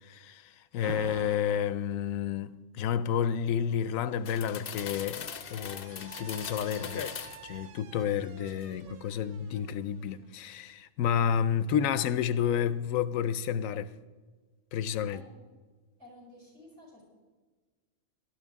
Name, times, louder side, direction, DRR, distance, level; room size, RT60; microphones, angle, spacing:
voice 1, 0.0-7.1 7.4-13.9 14.7-15.2, left 8 dB, 85° left, 1.0 m, -30 dB
Alarm, 0.8-1.8 3.0-10.7, right 9 dB, 75° right, 1.0 m, -49 dB
sound 1, 4.2-7.5 8.0-8.9 9.2-9.5, left 8 dB, 55° left, 0.7 m, -41 dB
voice 2, 15.1-15.4 16.0-17.0, left 1 dB, 60° right, 5.6 m, -53 dB
18.0 x 11.5 x 3.6 m
omnidirectional pair, 1.4 m